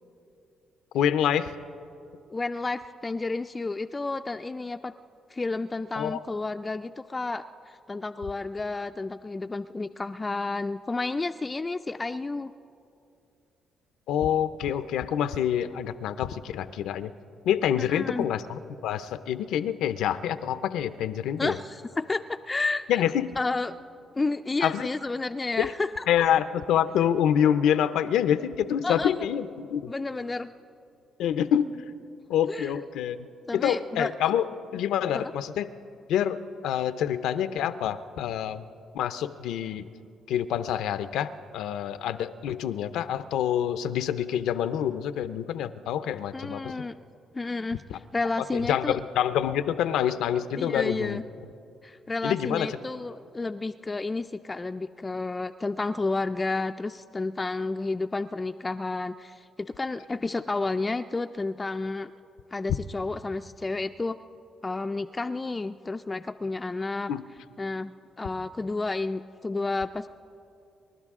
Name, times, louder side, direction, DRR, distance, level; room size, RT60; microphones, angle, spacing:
voice 1, 0.9-1.5 6.0-6.2 14.1-17.1 17.4-21.6 22.9-23.4 24.6-24.9 25.6-25.7 26.1-29.9 31.2-31.7 32.3-33.2 33.5-35.7 36.1-38.6 38.9-39.9 40.3-46.7 47.9-48.0 48.5-51.2 52.2-52.7 67.1-67.2, left 9 dB, 85° left, 12 dB, 0.5 m, -27 dB
voice 2, 2.3-4.9 5.3-12.5 17.8-18.3 21.4-23.0 23.4-23.7 24.1-26.0 28.8-29.2 29.9-30.5 32.5-32.7 33.5-34.1 35.1-35.2 46.3-46.9 47.3-49.0 50.6-51.2 51.8-62.1 62.5-64.2 64.6-67.1 67.6-67.9 68.2-70.1, left 3 dB, 20° left, 7 dB, 0.3 m, -31 dB
28.5 x 12.0 x 3.6 m, 2.6 s
cardioid pair, 90°, 0 cm